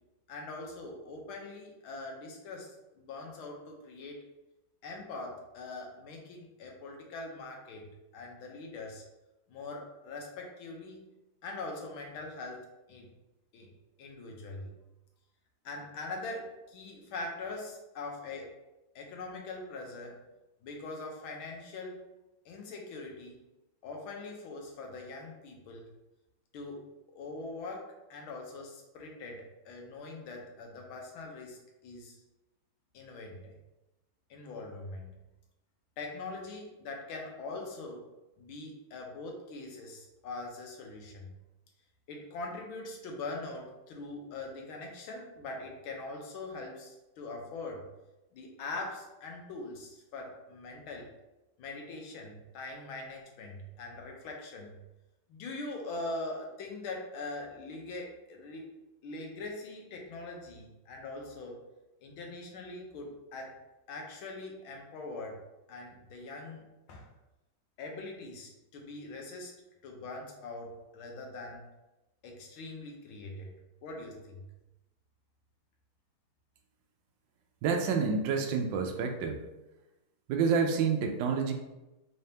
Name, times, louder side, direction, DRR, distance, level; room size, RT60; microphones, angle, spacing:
voice 1, 0.3-4.2 4.8-9.0 9.5-11.0 11.4-13.1 13.5-13.7 14.0-14.7 15.6-18.5 18.9-20.2 20.6-22.1 22.4-23.4 23.8-25.9 26.5-32.2 32.9-33.5 34.3-35.1 36.0-38.1 38.4-41.3 42.1-47.9 48.3-51.1 51.6-54.8 55.3-58.7 59.0-61.6 62.0-63.6 63.9-65.4 65.7-66.6 66.9-67.1 67.8-69.5 69.8-71.6 72.2-73.5 73.8-74.5, left 2 dB, 75° left, 0 dB, 1.5 m, -42 dB
voice 2, 77.6-79.4 80.3-81.5, right 5 dB, 75° right, 3 dB, 1.1 m, -28 dB
3.9 x 3.3 x 2.8 m, 0.98 s
omnidirectional pair, 2.3 m